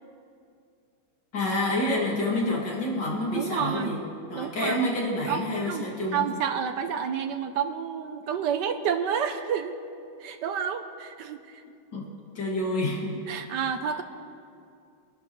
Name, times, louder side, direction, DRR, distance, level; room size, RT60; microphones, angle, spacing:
voice 1, 1.3-4.0 4.3-6.3 11.9-12.1 12.3-13.1 13.4-13.6, left 1 dB, 50° left, -3 dB, 3.0 m, -28 dB
voice 2, 3.3-3.9 4.3-4.8 5.3-9.8 10.2-11.6 13.3-14.0, right 7 dB, 65° right, 8 dB, 1.1 m, -30 dB
24.0 x 12.0 x 3.1 m, 2.4 s
omnidirectional pair, 2.4 m